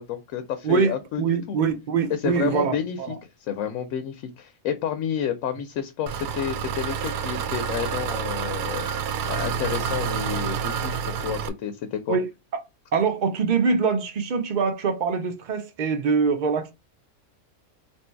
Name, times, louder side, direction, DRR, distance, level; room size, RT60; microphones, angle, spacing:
voice 1, 0.0-1.6 2.1-12.2, left 8 dB, 70° left, 0.9 m, -30 dB
voice 2, 1.2-3.1 12.1-12.3 12.5-12.6 12.9-16.7, right 5 dB, 55° right, 0.5 m, -24 dB
Engine, 6.1-11.5, right 7 dB, 90° right, 1.1 m, -28 dB
3.0 x 2.6 x 4.4 m
omnidirectional pair, 1.5 m